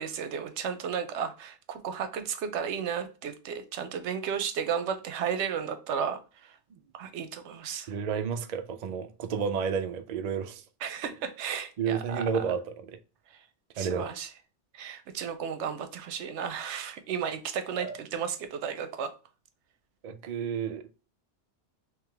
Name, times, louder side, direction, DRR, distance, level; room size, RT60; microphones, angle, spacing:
voice 1, 0.0-6.6 6.9-7.9 10.8-12.5 13.7-14.3 14.7-19.1, right 7 dB, 85° right, 0.9 m, -34 dB
voice 2, 7.9-10.6 11.8-13.0 13.8-14.1 17.8-18.0 20.0-20.8, right 6 dB, 60° right, 0.4 m, -31 dB
3.6 x 3.0 x 3.3 m
omnidirectional pair, 1.2 m